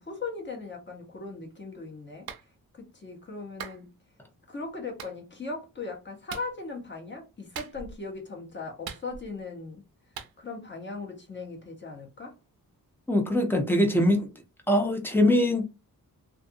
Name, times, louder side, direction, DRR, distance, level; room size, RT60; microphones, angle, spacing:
voice 1, 0.0-2.3 2.7-4.0 4.5-9.8 10.4-12.3, left 3 dB, 30° left, 0.9 m, -38 dB
Clapping, 2.3-2.5 3.6-3.8 5.0-5.1 6.3-6.5 7.5-8.0 8.8-9.4 10.2-10.3, right 7 dB, 85° right, 0.6 m, -40 dB
voice 2, 13.1-14.3 14.7-15.6, left 1 dB, 5° left, 0.5 m, -22 dB
2.5 x 2.4 x 2.6 m
wide cardioid pair, 145°, 35 cm